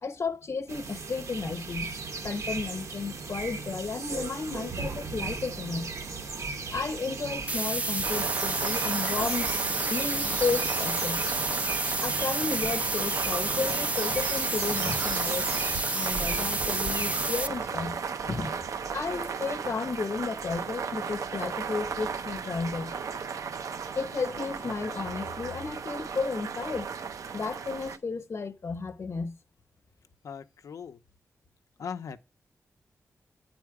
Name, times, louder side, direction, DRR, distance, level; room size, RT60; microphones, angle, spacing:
voice 1, 0.0-1.9 2.2-5.9 6.7-9.5 9.9-11.2 12.0-18.5 18.9-22.9 23.9-26.9 27.3-29.4, left 4 dB, 55° left, 1.0 m, -33 dB
sound 1, 0.7-17.3, right 4 dB, 70° right, 1.0 m, -37 dB
sound 2, 7.5-17.5, right 2 dB, 25° right, 0.4 m, -30 dB
sound 3, 8.0-28.0, right 6 dB, 85° right, 0.6 m, -35 dB
voice 2, 30.2-31.0 31.8-32.2, left 6 dB, 80° left, 0.7 m, -39 dB
9.5 x 4.3 x 4.8 m
wide cardioid pair, 85°, 6 cm